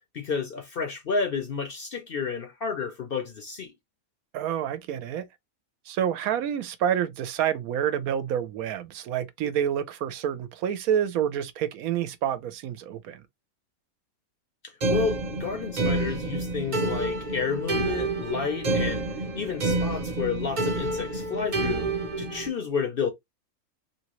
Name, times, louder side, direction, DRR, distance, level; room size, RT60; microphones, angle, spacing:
voice 1, 0.1-3.7 14.9-19.1 19.3-21.9 22.2-23.1, left 5 dB, 55° left, 0.7 m, -31 dB
voice 2, 4.3-5.2 5.9-13.2, right 9 dB, 80° right, 1.0 m, -28 dB
sound 1, 14.8-22.5, right 2 dB, 45° right, 0.7 m, -28 dB
2.8 x 2.8 x 3.0 m
omnidirectional pair, 1.5 m